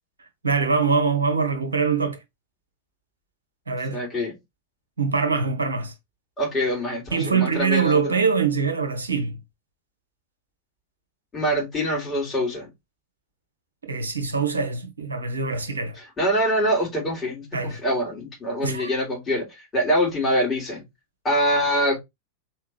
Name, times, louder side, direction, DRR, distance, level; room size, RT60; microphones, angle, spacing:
voice 1, 0.4-2.2 3.7-4.1 5.0-5.9 7.1-9.4 13.8-16.0 17.5-17.8 18.6-19.0, right 5 dB, 75° right, 1.1 m, -23 dB
voice 2, 3.9-4.3 6.4-8.2 11.3-12.7 16.2-19.5 19.7-20.8 21.2-22.0, equal, 20° left, 3.1 m, -24 dB
4.3 x 3.5 x 3.2 m
figure-of-eight pair, 90°, 0 cm